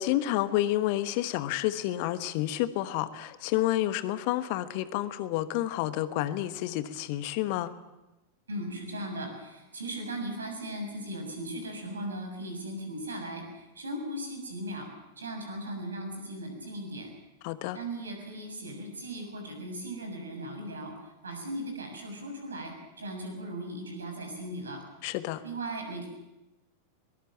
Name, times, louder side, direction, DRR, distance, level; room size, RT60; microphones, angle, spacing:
voice 1, 0.0-7.7 17.4-17.8 25.0-25.4, left 14 dB, 45° left, 13 dB, 1.2 m, -29 dB
voice 2, 8.5-14.9 15.2-17.1 17.7-20.9 21.2-24.8 25.4-26.1, right 1 dB, 70° right, 4 dB, 7.0 m, -38 dB
22.5 x 21.0 x 7.5 m, 0.97 s
figure-of-eight pair, 90°, 0 cm